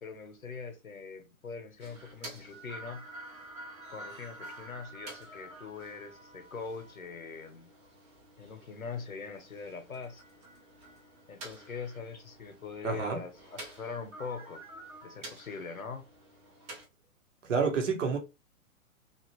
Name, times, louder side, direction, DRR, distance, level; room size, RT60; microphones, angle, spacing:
voice 1, 0.0-3.0 3.9-7.7 8.4-10.2 11.3-14.6 15.0-16.1, left 5 dB, 85° left, 0.9 m, -42 dB
sound 1, 1.8-16.8, right 1 dB, 15° right, 0.7 m, -49 dB
voice 2, 12.8-13.2 17.5-18.2, right 5 dB, 60° right, 1.0 m, -28 dB
2.9 x 2.4 x 2.8 m
figure-of-eight pair, 120°, 41 cm